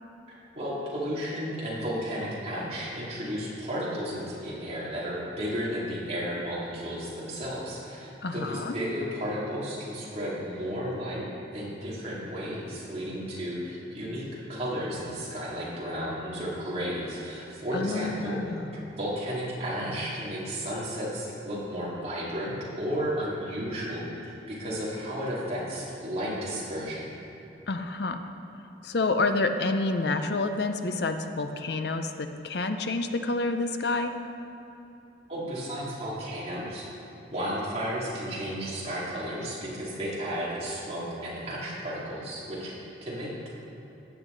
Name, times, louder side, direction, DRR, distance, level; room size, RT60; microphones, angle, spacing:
voice 1, 0.3-11.2 11.5-18.4 18.7-27.1 35.3-36.9 37.3-42.8 43.0-43.5, equal, 35° right, -7 dB, 2.6 m, -33 dB
voice 2, 8.2-8.8 17.7-18.9 27.7-28.2 28.8-34.1, left 3 dB, 65° left, 7 dB, 0.6 m, -28 dB
14.5 x 8.2 x 3.9 m, 2.9 s
head